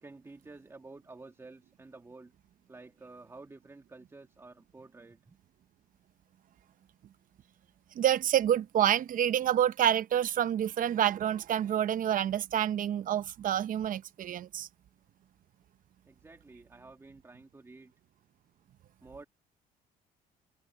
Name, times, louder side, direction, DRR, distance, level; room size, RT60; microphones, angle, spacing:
voice 1, 0.0-2.3 2.7-5.4 16.1-17.9 19.0-19.3, right 3 dB, 15° right, 2.3 m, -51 dB
voice 2, 7.9-14.7, right 10 dB, 55° right, 0.9 m, -28 dB
cardioid pair, 110°, 17 cm